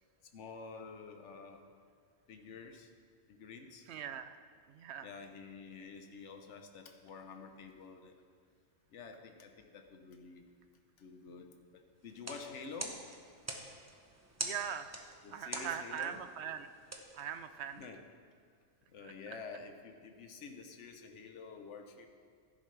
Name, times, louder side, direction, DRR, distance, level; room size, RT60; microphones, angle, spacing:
voice 1, 0.3-1.7 2.3-2.9 3.3-3.8 5.0-8.1 8.9-10.5 11.0-13.0 15.2-16.2 17.8-18.0 18.9-22.1, left 4 dB, 75° left, 5 dB, 1.2 m, -49 dB
voice 2, 3.9-4.4 4.7-5.1 14.4-14.9 15.3-16.7 17.2-17.9 19.0-19.4, right 8 dB, 70° right, 10 dB, 0.8 m, -41 dB
sound 1, 12.1-17.9, right 1 dB, 15° right, 0.8 m, -46 dB
16.0 x 10.5 x 3.3 m, 2.1 s
omnidirectional pair, 1.2 m